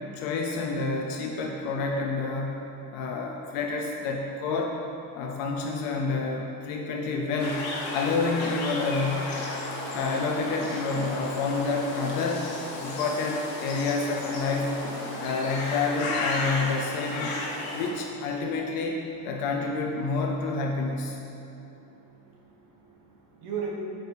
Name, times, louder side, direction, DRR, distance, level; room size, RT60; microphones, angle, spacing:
voice 1, 0.1-2.6 2.9-4.7 5.1-9.3 9.9-12.5 12.8-14.8 15.2-17.4 17.7-21.2, left 3 dB, 55° left, 1 dB, 0.6 m, -28 dB
sound 1, 7.4-17.9, left 2 dB, 85° left, 1.5 m, -34 dB
voice 2, 21.8-23.8, right 6 dB, 50° right, -3 dB, 1.2 m, -38 dB
8.7 x 5.0 x 3.3 m, 3.0 s
cardioid pair, 180°, 43 cm